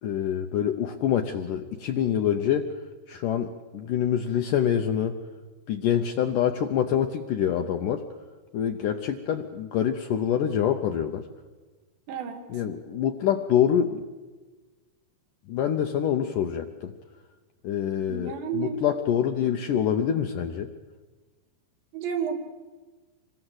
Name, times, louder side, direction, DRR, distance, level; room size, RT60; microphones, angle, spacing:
voice 1, 0.0-2.7 3.1-5.2 5.7-8.0 8.5-11.2 12.5-14.0 15.5-16.9 17.6-20.7, left 9 dB, 75° left, 6 dB, 1.9 m, -26 dB
voice 2, 12.1-12.6 18.1-18.8 21.9-22.4, right 7 dB, 90° right, 4 dB, 4.6 m, -31 dB
26.5 x 21.0 x 8.0 m, 1.3 s
omnidirectional pair, 5.0 m